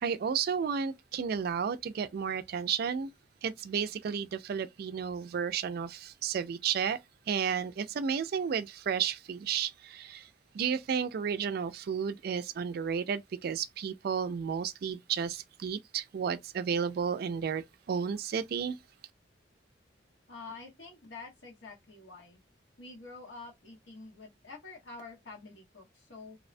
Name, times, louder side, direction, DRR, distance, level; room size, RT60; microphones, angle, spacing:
voice 1, 0.0-3.1 3.4-7.0 7.3-10.3 10.5-18.8, right 7 dB, 55° right, 0.3 m, -32 dB
voice 2, 20.3-22.4 22.8-26.4, left 3 dB, 80° left, 1.1 m, -47 dB
2.6 x 2.1 x 2.5 m
head